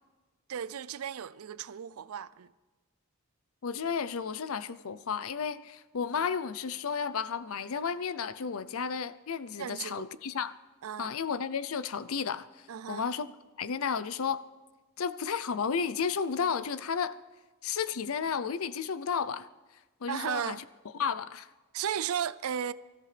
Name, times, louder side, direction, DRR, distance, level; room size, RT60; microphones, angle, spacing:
voice 1, 0.5-2.5 9.6-10.1 10.8-11.1 12.7-13.0 20.1-20.6 21.7-22.7, right 8 dB, 75° right, 0.4 m, -35 dB
voice 2, 3.6-10.5 11.0-12.5 12.9-13.3 13.6-14.4 15.0-17.2 17.6-19.5 20.0-20.6 21.0-21.5, left 6 dB, 70° left, 0.6 m, -32 dB
24.5 x 14.0 x 3.4 m
head